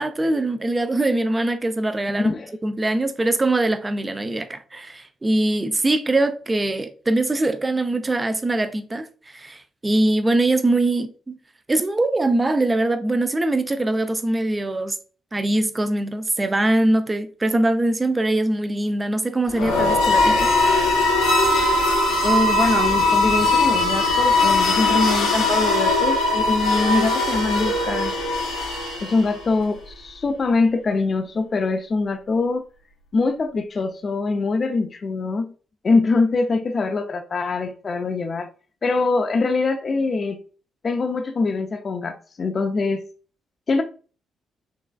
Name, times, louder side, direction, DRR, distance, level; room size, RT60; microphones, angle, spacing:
voice 1, 0.0-2.3 2.6-11.4 11.7-15.0 15.3-20.5, right 2 dB, 25° right, 0.5 m, -22 dB
voice 2, 2.1-2.5 22.2-28.1 29.0-32.6 33.1-35.5 35.8-38.5 38.8-40.4 40.8-43.0 43.7-43.8, left 3 dB, 45° left, 0.5 m, -23 dB
sound 1, 19.5-29.4, left 2 dB, 75° left, 1.0 m, -20 dB
4.7 x 3.2 x 2.3 m
hypercardioid pair, 40°, 0 cm